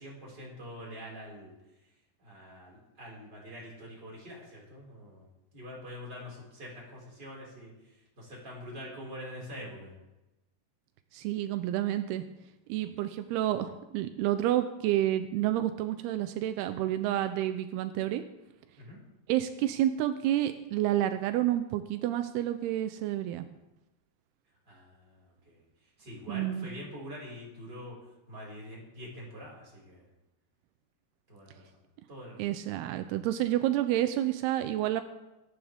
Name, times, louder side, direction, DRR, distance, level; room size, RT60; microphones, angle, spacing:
voice 1, 0.0-1.5 2.2-5.2 5.5-7.7 8.2-9.9 18.8-19.0 24.7-25.6 26.0-28.0 28.3-30.0 31.3-31.7 32.1-32.4, equal, 20° right, -4 dB, 5.5 m, -45 dB
voice 2, 11.1-12.2 12.7-18.2 19.3-23.5 26.3-26.7 32.4-35.0, right 13 dB, 85° right, 9 dB, 2.3 m, -29 dB
24.0 x 11.0 x 3.6 m, 1.0 s
omnidirectional pair, 5.3 m